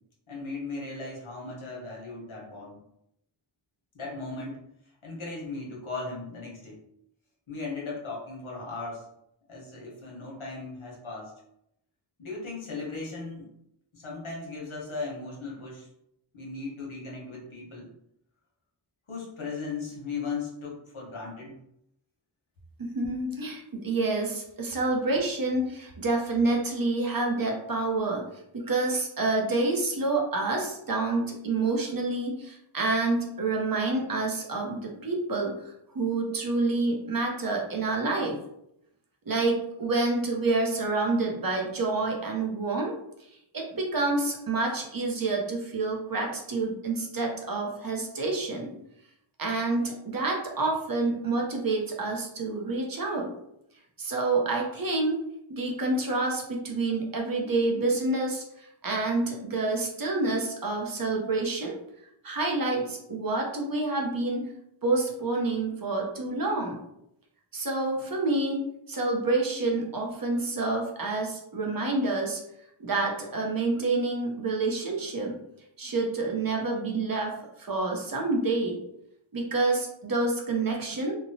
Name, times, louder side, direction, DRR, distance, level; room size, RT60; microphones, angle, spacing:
voice 1, 0.3-2.8 3.9-4.6 5.0-6.8 7.5-9.1 9.5-11.3 12.2-13.5 13.9-15.9 16.3-17.9 19.1-21.6, left 3 dB, 70° left, -3 dB, 1.1 m, -37 dB
voice 2, 22.8-28.3 28.5-38.4 39.3-42.9 43.5-48.7 49.4-53.3 54.0-55.2 55.5-61.8 62.2-64.5 64.8-66.8 67.5-72.4 72.8-75.4 75.8-77.3 77.6-78.8 79.3-81.2, right 3 dB, 45° right, 0 dB, 0.7 m, -28 dB
2.9 x 2.2 x 2.6 m, 0.78 s
wide cardioid pair, 60°, 49 cm